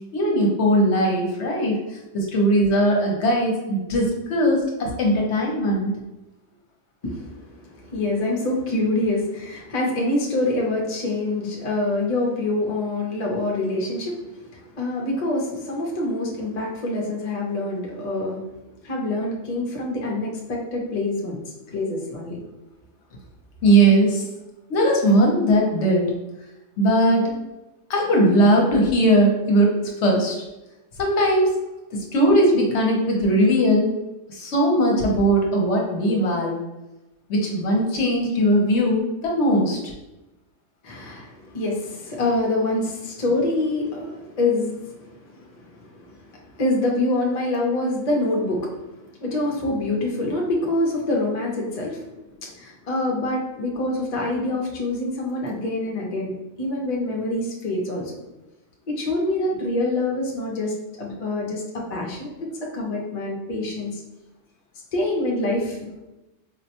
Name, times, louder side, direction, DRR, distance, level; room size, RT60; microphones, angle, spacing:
voice 1, 0.1-1.8 2.1-5.9 23.6-24.3 24.7-26.1 26.8-27.3 27.9-30.4 31.0-31.6 31.9-33.9 34.3-36.6 37.3-39.8, right 1 dB, 65° left, -1 dB, 0.9 m, -19 dB
voice 2, 7.0-18.5 18.8-22.4 40.8-48.7 49.2-52.1 52.4-56.3 56.6-58.2 58.9-62.3 62.7-64.0 64.9-65.9, left 2 dB, 40° left, -2 dB, 0.6 m, -26 dB
4.3 x 2.1 x 2.8 m, 1.0 s
omnidirectional pair, 1.3 m